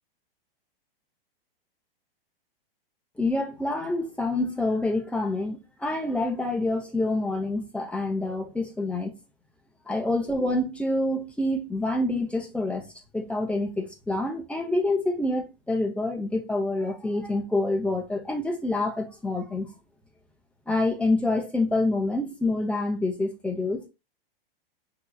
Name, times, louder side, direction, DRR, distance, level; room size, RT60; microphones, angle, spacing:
voice 1, 3.2-9.1 9.9-12.9 13.1-19.7 20.7-23.9, left 2 dB, 5° left, 0.8 m, -27 dB
5.7 x 2.9 x 2.3 m
hypercardioid pair, 120°, 30 cm